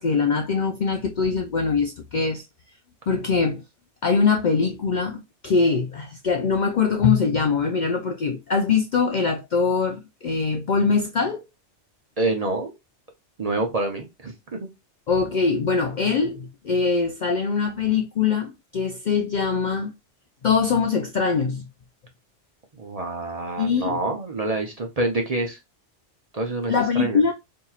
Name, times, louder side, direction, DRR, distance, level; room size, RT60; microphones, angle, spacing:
voice 1, 0.0-2.4 3.1-3.6 4.0-11.4 15.1-19.9 20.4-21.7 23.6-24.0 26.7-27.3, left 5 dB, 60° left, 0.5 m, -22 dB
voice 2, 12.2-12.7 13.4-14.7 22.8-25.6 26.3-27.2, right 2 dB, 40° right, 0.6 m, -27 dB
4.3 x 2.7 x 2.3 m
omnidirectional pair, 1.2 m